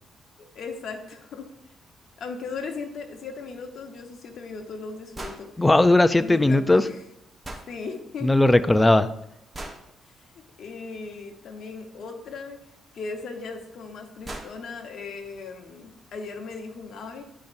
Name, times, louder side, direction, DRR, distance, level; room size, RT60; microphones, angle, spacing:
voice 1, 0.5-1.5 2.2-5.5 6.2-7.0 7.7-8.3 10.2-12.6 12.9-17.2, left 4 dB, 65° left, 4 dB, 1.1 m, -37 dB
sound 1, 5.1-5.4 7.4-7.7 9.5-9.8 12.1-12.2 13.5-13.6 13.9-14.0 14.2-14.5, right 1 dB, 20° right, 1.2 m, -37 dB
voice 2, 5.6-6.8 8.2-9.1, left 2 dB, 15° left, 13 dB, 0.4 m, -18 dB
10.5 x 5.3 x 2.6 m, 0.80 s
cardioid pair, 90°, 0 cm